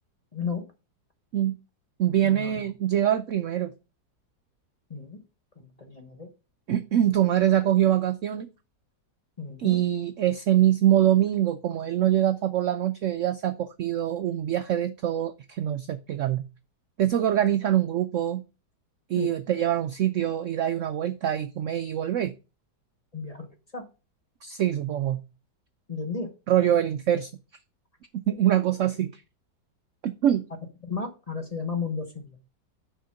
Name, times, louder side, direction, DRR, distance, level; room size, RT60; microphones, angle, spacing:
voice 1, 0.3-0.6 2.2-2.7 4.9-5.2 5.6-6.3 9.4-9.8 19.2-19.3 23.1-23.9 25.9-26.3 30.8-32.4, left 5 dB, 30° left, 0.9 m, -33 dB
voice 2, 2.0-3.7 6.7-8.5 9.6-16.4 17.0-18.4 19.1-22.3 24.4-25.2 26.5-27.3 28.3-29.2 30.0-30.4, right 11 dB, 80° right, 0.6 m, -24 dB
6.5 x 4.4 x 5.6 m
omnidirectional pair, 1.9 m